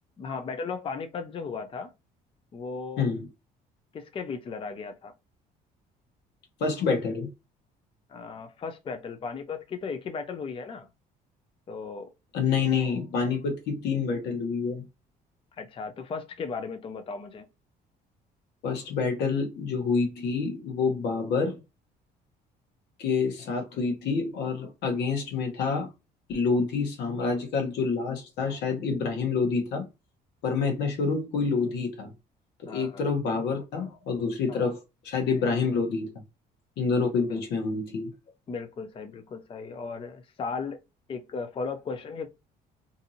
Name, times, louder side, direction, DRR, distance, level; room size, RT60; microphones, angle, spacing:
voice 1, 0.2-1.9 2.5-3.1 3.9-5.1 8.1-10.9 11.7-12.1 15.6-17.5 32.7-33.0 34.5-34.7 37.3-37.4 38.5-40.8 41.1-42.3, left 5 dB, 30° left, 0.5 m, -36 dB
voice 2, 3.0-3.3 6.6-7.3 12.3-14.9 18.6-21.6 23.0-25.9 26.3-29.9 30.4-32.1 32.6-34.8 35.0-36.2 36.8-38.1, left 4 dB, 75° left, 1.0 m, -27 dB
2.6 x 2.6 x 2.6 m
cardioid pair, 110°, 17 cm